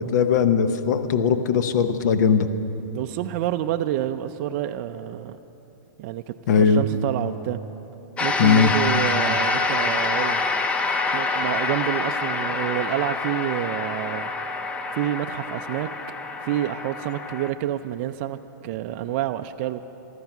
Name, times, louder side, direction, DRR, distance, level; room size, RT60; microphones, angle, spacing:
voice 1, 0.1-2.5 6.5-6.8 8.4-8.7, left 7 dB, 60° left, 11 dB, 0.9 m, -19 dB
voice 2, 2.9-5.4 6.0-7.6 8.2-10.4 11.1-14.3 14.9-15.9 16.4-19.8, right 12 dB, 40° right, 7 dB, 0.4 m, -28 dB
sound 1, 8.2-17.5, left 3 dB, 10° left, 0.5 m, -26 dB
14.5 x 13.0 x 6.0 m, 3.0 s
hypercardioid pair, 150°, 11 cm